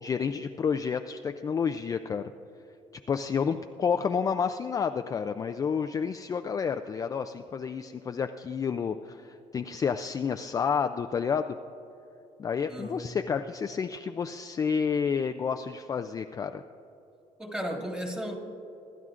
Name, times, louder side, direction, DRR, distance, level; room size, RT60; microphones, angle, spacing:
voice 1, 0.0-2.3 3.1-11.6 12.4-16.6, left 6 dB, 25° left, 7 dB, 0.3 m, -30 dB
voice 2, 12.7-13.0 17.4-18.4, equal, 5° right, 1 dB, 1.7 m, -34 dB
25.0 x 12.0 x 2.5 m, 3.0 s
cardioid pair, 145°, 13 cm